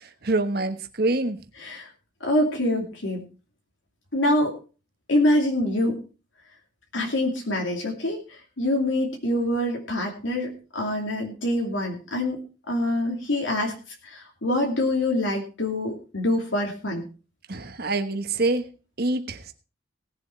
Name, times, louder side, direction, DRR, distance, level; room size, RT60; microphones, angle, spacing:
voice 1, 0.2-1.4 17.5-18.6 19.0-19.4, right 2 dB, 50° right, 8 dB, 1.3 m, -25 dB
voice 2, 1.6-1.9 2.2-3.2 4.1-4.6 5.1-6.0 6.9-12.4 12.7-13.7 14.0-17.1, left 1 dB, 75° left, 0 dB, 2.6 m, -25 dB
18.5 x 7.5 x 4.5 m, 0.35 s
head